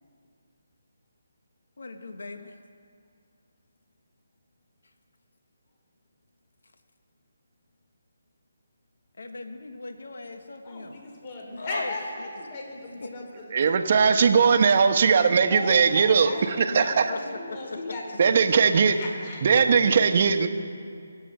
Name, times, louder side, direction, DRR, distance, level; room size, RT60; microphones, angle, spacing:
voice 1, 1.8-2.6 9.2-10.9 11.6-11.9 12.2-12.3 13.0-13.1 17.1-17.2, left 3 dB, 75° left, 6 dB, 1.6 m, -37 dB
voice 2, 10.6-13.8 15.5-18.6 18.9-19.4, left 2 dB, 35° left, 0 dB, 3.5 m, -37 dB
voice 3, 13.5-17.1 18.2-19.0 19.4-20.5, right 6 dB, 45° right, 8 dB, 1.1 m, -20 dB
23.5 x 8.6 x 6.7 m, 2.3 s
figure-of-eight pair, 155°, 0 cm